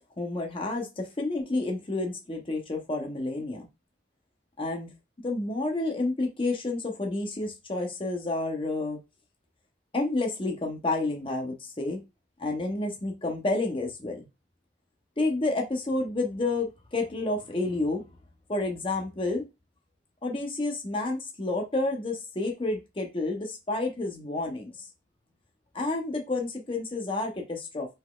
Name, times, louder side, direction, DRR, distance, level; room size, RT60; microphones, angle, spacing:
voice 1, 0.2-3.7 4.6-4.9 5.2-9.0 9.9-12.0 12.4-14.3 15.2-18.0 18.5-19.5 20.2-24.7 25.7-27.9, left 2 dB, 30° left, 1 dB, 0.8 m, -30 dB
5.2 x 3.9 x 2.3 m, 0.25 s
head